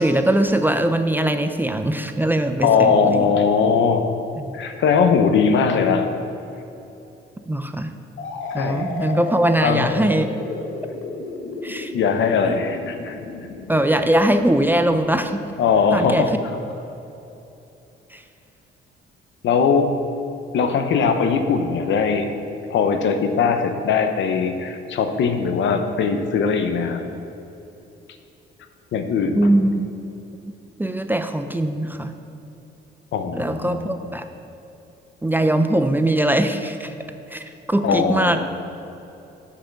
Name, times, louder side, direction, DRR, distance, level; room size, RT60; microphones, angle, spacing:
voice 1, 0.0-3.3 4.4-4.6 7.5-7.9 8.5-10.3 11.6-11.9 12.4-12.5 13.7-15.4 15.9-16.2 18.1-18.2 29.3-29.9 30.8-32.1 33.3-34.2 35.2-36.9 37.3-38.4, right 1 dB, 10° right, 8 dB, 0.4 m, -21 dB
voice 2, 2.6-4.0 4.5-6.1 8.6-8.9 9.6-9.9 11.9-13.2 15.6-16.3 19.4-19.9 20.5-22.3 22.7-27.0 28.9-29.5 33.1-33.9 37.8-38.5, left 5 dB, 70° left, 7 dB, 0.8 m, -20 dB
sound 1, 8.2-15.8, left 3 dB, 85° left, 1.0 m, -33 dB
6.2 x 5.7 x 6.9 m, 2.9 s
cardioid pair, 90°, 20 cm